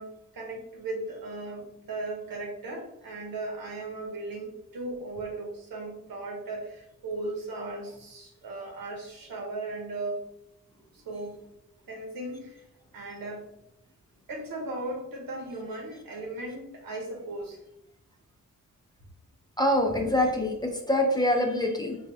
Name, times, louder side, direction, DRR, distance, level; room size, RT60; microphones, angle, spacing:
voice 1, 0.0-10.2 10.9-11.4 11.9-12.6 12.9-13.5 14.3-17.6, right 2 dB, 85° right, 1 dB, 0.9 m, -37 dB
voice 2, 19.6-22.0, left 1 dB, 10° left, 2 dB, 0.5 m, -25 dB
4.4 x 2.3 x 2.7 m, 0.83 s
wide cardioid pair, 85°, 33 cm